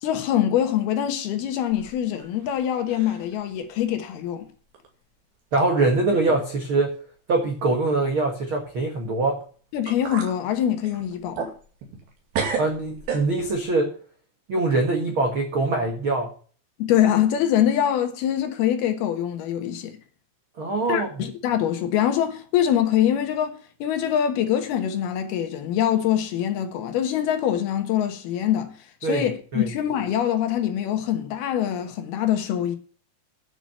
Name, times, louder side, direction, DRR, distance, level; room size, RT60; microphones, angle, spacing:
voice 1, 0.0-4.5 9.7-11.5 16.8-20.0 20.9-32.8, left 10 dB, 70° left, 2.9 m, -24 dB
sound 1, 1.7-2.6 2.9-3.3 3.8-3.9 4.7-4.9 5.6-5.7 6.1-6.5 6.8-6.9 9.4-9.5 9.9-10.4 10.8-12.1 12.3-13.6, right 6 dB, 60° right, 4.0 m, -32 dB
voice 2, 5.5-6.9 7.3-9.4 12.6-13.9 14.5-16.3 20.6-21.2 29.0-29.7, right 2 dB, 80° right, 1.1 m, -23 dB
10.5 x 6.0 x 7.3 m
omnidirectional pair, 5.1 m